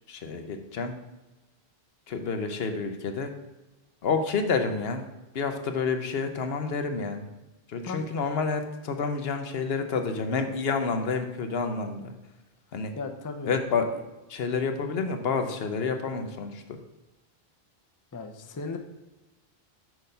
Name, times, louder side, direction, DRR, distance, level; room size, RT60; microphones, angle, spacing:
voice 1, 0.1-1.0 2.1-3.3 4.0-5.0 5.3-7.3 7.7-12.1 12.7-12.9 13.5-13.9 14.3-16.6, left 4 dB, 75° left, 7 dB, 1.0 m, -29 dB
voice 2, 13.0-13.5 18.1-18.8, left 4 dB, 25° left, 5 dB, 0.5 m, -36 dB
6.2 x 5.2 x 5.6 m, 1.1 s
omnidirectional pair, 1.0 m